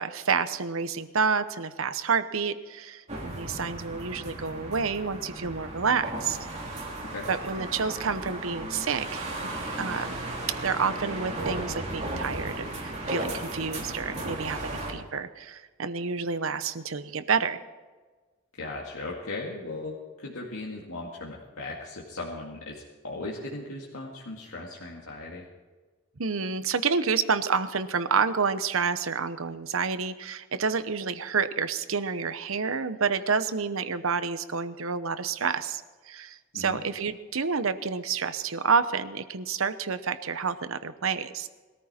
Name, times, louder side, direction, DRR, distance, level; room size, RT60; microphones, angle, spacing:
voice 1, 0.0-6.4 7.3-9.3 9.8-10.2 10.6-17.6 26.2-41.5, right 5 dB, 80° right, 12 dB, 0.9 m, -29 dB
sound 1, 3.1-14.9, right 1 dB, 30° right, 3.2 m, -35 dB
voice 2, 18.5-25.4 36.5-36.8, left 2 dB, 80° left, -3 dB, 2.2 m, -38 dB
21.0 x 14.0 x 4.4 m, 1.3 s
head